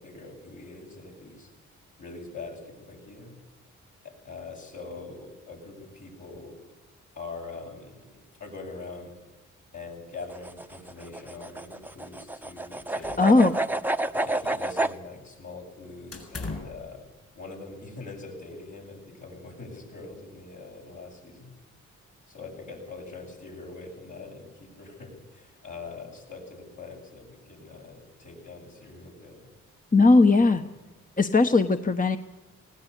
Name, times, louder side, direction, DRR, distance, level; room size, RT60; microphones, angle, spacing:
voice 1, 0.0-1.5 2.0-3.3 4.0-6.6 7.2-9.1 9.7-13.6 14.1-17.1 17.3-21.5 22.3-29.5 30.4-30.5, left 3 dB, 65° left, -2 dB, 7.9 m, -43 dB
sound 1, 10.2-15.0, right 2 dB, 5° right, 1.0 m, -30 dB
sound 2, 13.0-13.8 14.0-15.0 16.1-16.8, left 3 dB, 45° left, 7.3 m, -40 dB
voice 2, 13.2-13.6 29.9-30.6 31.2-32.2, left 3 dB, 25° left, 7 dB, 1.2 m, -18 dB
19.0 x 16.5 x 8.4 m, 1.1 s
supercardioid pair, 40°, 33 cm